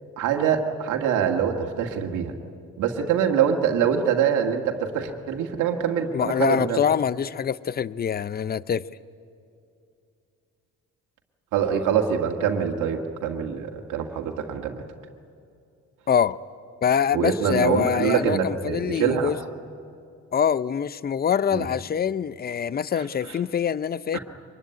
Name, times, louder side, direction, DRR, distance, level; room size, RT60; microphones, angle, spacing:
voice 1, 0.2-2.3 2.8-6.8 11.5-14.8 17.1-19.3 21.5-21.7 24.1-24.2, right 8 dB, 85° right, 2 dB, 1.9 m, -24 dB
voice 2, 6.1-8.9 16.1-16.4 16.8-19.4 20.3-24.2, left 8 dB, 30° left, 17 dB, 0.6 m, -24 dB
24.0 x 21.5 x 9.6 m, 2.5 s
cardioid pair, 90°, 30 cm